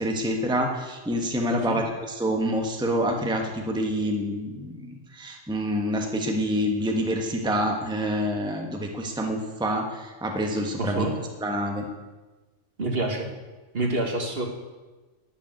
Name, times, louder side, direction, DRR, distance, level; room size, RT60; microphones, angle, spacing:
voice 1, 0.0-11.1 11.4-11.9, equal, 5° right, 2 dB, 1.2 m, -27 dB
voice 2, 1.5-1.8 10.8-11.2 12.8-13.3 13.7-14.5, right 2 dB, 50° right, 2 dB, 1.9 m, -27 dB
11.5 x 7.0 x 9.3 m, 1.2 s
omnidirectional pair, 1.3 m